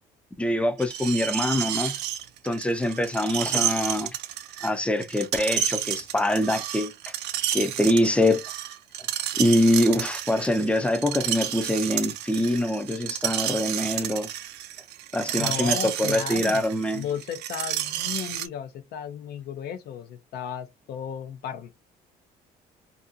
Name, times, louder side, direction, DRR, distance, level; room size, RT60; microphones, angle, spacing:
voice 1, 0.4-2.0 2.4-4.2 4.6-7.1 7.5-8.4 9.3-14.3 15.1-17.0, left 1 dB, 5° left, 0.4 m, -24 dB
Screech, 0.8-18.5, right 11 dB, 85° right, 0.4 m, -31 dB
voice 2, 15.4-21.7, left 8 dB, 70° left, 0.6 m, -35 dB
2.5 x 2.3 x 2.6 m
cardioid pair, 110°, 17 cm